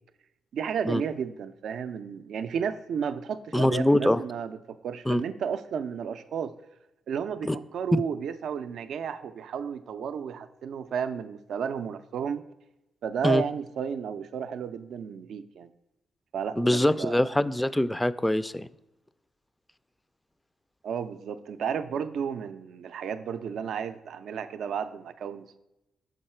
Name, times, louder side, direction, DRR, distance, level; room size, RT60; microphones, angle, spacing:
voice 1, 0.5-6.5 7.1-12.4 13.0-15.7 16.3-17.3 20.8-25.6, right 7 dB, 75° right, 10 dB, 0.4 m, -33 dB
voice 2, 3.5-4.2 5.1-5.2 7.4-7.6 7.9-8.0 13.2-13.4 16.6-18.7, left 1 dB, 10° left, 15 dB, 0.3 m, -23 dB
6.6 x 4.7 x 4.3 m, 0.94 s
cardioid pair, 70°, 0 cm